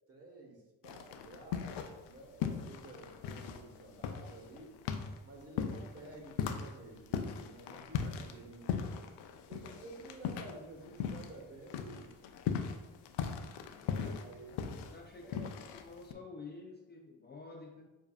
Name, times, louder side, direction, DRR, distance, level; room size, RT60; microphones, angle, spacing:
voice 1, 0.1-4.7 5.2-8.9 9.5-12.1 14.0-14.5 15.2-15.5, right 2 dB, 35° right, 0 dB, 1.3 m, -52 dB
sound 1, 0.8-2.1 2.4-11.4 11.7-16.1, left 7 dB, 85° left, 0.5 m, -38 dB
voice 2, 14.5-17.9, left 4 dB, 25° left, 1 dB, 0.4 m, -50 dB
6.9 x 2.7 x 2.4 m, 1.1 s
cardioid pair, 75°, 41 cm